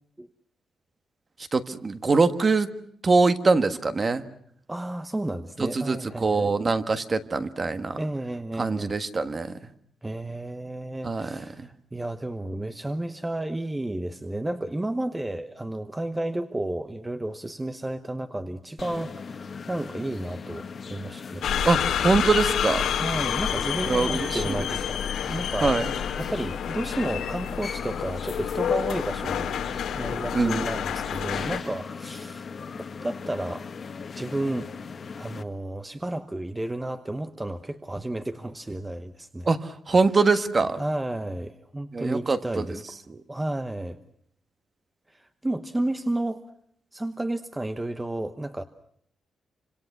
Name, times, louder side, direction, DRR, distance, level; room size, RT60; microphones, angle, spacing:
voice 1, 1.5-2.7 3.0-4.2 5.6-8.0 8.6-9.5 11.0-11.7 21.6-22.8 23.9-24.7 25.6-25.8 30.3-30.6 39.5-40.8 41.9-42.8 43.1-43.2, right 3 dB, 30° right, 10 dB, 1.5 m, -23 dB
voice 2, 4.7-6.6 8.0-8.9 10.0-21.7 22.9-25.0 25.3-25.8 26.1-29.6 29.9-32.5 32.8-33.7 34.1-34.7 35.2-39.5 40.8-42.8 43.3-44.0 45.1-46.4 46.9-48.6, right 1 dB, 10° right, 9 dB, 1.0 m, -32 dB
sound 1, 18.8-35.4, left 5 dB, 40° left, 1.6 m, -39 dB
sound 2, 21.4-31.6, left 9 dB, 85° left, 2.5 m, -29 dB
28.0 x 26.0 x 6.0 m, 0.68 s
wide cardioid pair, 145°, 0 cm